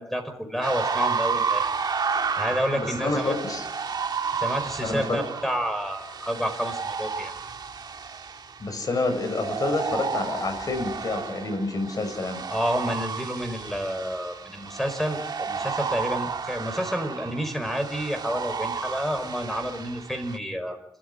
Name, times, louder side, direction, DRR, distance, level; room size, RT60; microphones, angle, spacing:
voice 1, 0.0-1.7 2.4-3.4 4.3-7.3 12.5-20.8, equal, 5° left, 7 dB, 5.3 m, -29 dB
sound 1, 0.6-20.4, right 5 dB, 55° right, 1.8 m, -32 dB
voice 2, 2.7-3.6 4.8-5.3 8.6-12.4, left 3 dB, 45° left, 7 dB, 6.2 m, -28 dB
29.5 x 14.0 x 9.9 m, 0.78 s
cardioid pair, 95°, 9 cm